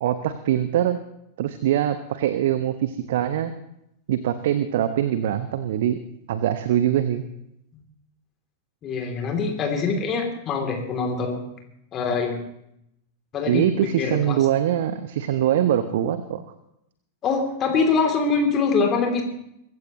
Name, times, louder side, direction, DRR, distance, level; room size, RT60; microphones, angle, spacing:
voice 1, 0.0-1.0 1.4-3.5 4.1-6.0 6.3-7.2 13.5-16.4, right 11 dB, 55° right, 11 dB, 0.9 m, -23 dB
voice 2, 8.8-11.4 11.9-12.4 13.3-13.7 14.0-14.4 17.2-19.2, left 4 dB, 30° left, 3 dB, 2.9 m, -24 dB
23.0 x 15.0 x 3.0 m, 0.79 s
figure-of-eight pair, 90°, 0 cm